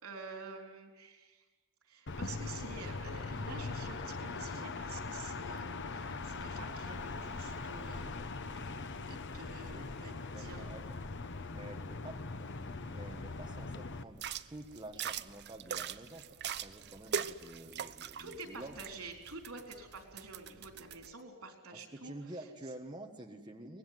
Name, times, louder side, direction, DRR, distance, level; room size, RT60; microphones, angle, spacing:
voice 1, 0.0-1.4 1.8-8.3 8.6-10.7 12.8-13.0 18.2-22.1, right 3 dB, 80° right, 4 dB, 4.0 m, -49 dB
sound 1, 2.1-14.0, left 3 dB, 55° left, 1.0 m, -41 dB
voice 2, 10.3-11.1 11.5-18.8 21.7-23.8, right 1 dB, 20° right, 2 dB, 1.4 m, -49 dB
sound 2, 14.1-21.1, right 7 dB, 50° right, 0.7 m, -42 dB
24.0 x 19.0 x 9.5 m, 1.2 s
head